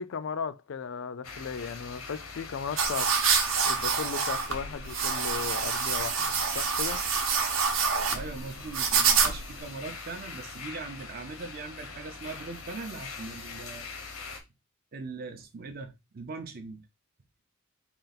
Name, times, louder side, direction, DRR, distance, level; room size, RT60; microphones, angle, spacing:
voice 1, 0.0-3.1 3.6-7.0, left 6 dB, 60° left, 0.4 m, -36 dB
sound 1, 1.2-14.4, left 4 dB, 90° left, 1.0 m, -43 dB
sound 2, 2.8-9.6, right 6 dB, 65° right, 0.8 m, -27 dB
voice 2, 8.1-13.9 14.9-16.8, right 3 dB, 45° right, 0.5 m, -40 dB
3.9 x 2.4 x 4.0 m
head